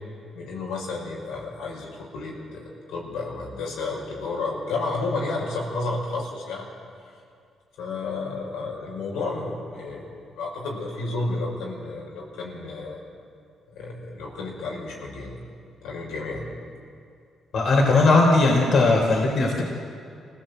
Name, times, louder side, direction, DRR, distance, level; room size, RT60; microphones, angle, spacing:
voice 1, 0.3-6.7 7.8-10.1 10.4-13.0 13.7-15.4 15.8-16.5, left 3 dB, 90° left, -2 dB, 5.6 m, -31 dB
voice 2, 17.5-19.6, left 3 dB, 60° left, -1 dB, 3.9 m, -18 dB
25.5 x 16.5 x 8.1 m, 2.4 s
cardioid pair, 90°, 0 cm